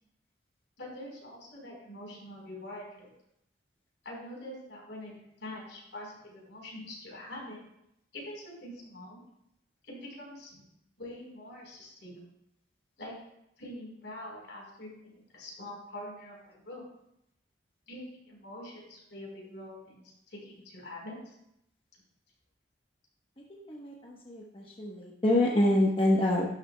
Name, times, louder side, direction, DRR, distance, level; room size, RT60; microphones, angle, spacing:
voice 1, 0.8-3.1 4.0-5.1 5.4-7.6 8.1-9.2 9.8-10.6 11.0-12.2 13.0-13.1 13.6-16.9 17.9-21.3, left 1 dB, 80° left, -2 dB, 4.3 m, -44 dB
voice 2, 23.5-26.5, left 1 dB, 30° left, -2 dB, 1.1 m, -27 dB
12.0 x 11.0 x 2.3 m, 0.78 s
head